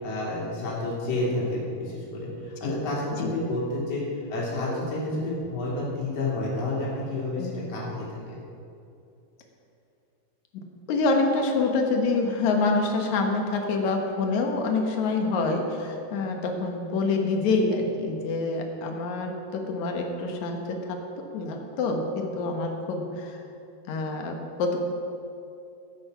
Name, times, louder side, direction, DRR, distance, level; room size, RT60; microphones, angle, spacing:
voice 1, 0.0-8.0, left 2 dB, 40° left, -6 dB, 3.9 m, -30 dB
voice 2, 3.1-3.5 5.1-5.2 7.4-7.5 10.9-23.4 23.9-24.8, left 3 dB, 65° left, 3 dB, 2.0 m, -27 dB
14.0 x 8.9 x 5.7 m, 2.6 s
omnidirectional pair, 4.6 m